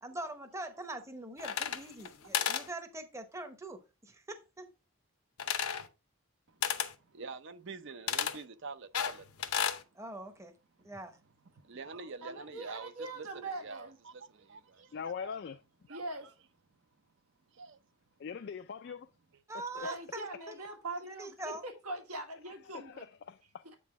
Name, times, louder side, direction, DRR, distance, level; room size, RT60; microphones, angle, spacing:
voice 1, 0.0-4.7 10.0-10.5 10.8-11.2 19.5-20.5 21.1-21.6, right 2 dB, 15° right, 0.8 m, -43 dB
sound 1, 1.4-2.1 2.3-2.7 5.4-5.9 6.6-6.9 8.1-8.4 8.9-9.8, left 8 dB, 80° left, 0.8 m, -32 dB
voice 2, 7.1-9.8 11.6-15.4 15.9-16.3 17.5-17.8, right 4 dB, 55° right, 0.6 m, -47 dB
voice 3, 12.2-14.0 14.8-14.9 15.9-16.3 19.8-23.1 23.7-23.8, right 2 dB, 85° right, 1.6 m, -42 dB
voice 4, 14.9-15.6 18.2-19.1 19.5-19.9 22.7-23.6, left 6 dB, 50° left, 0.3 m, -42 dB
8.2 x 3.9 x 4.7 m
head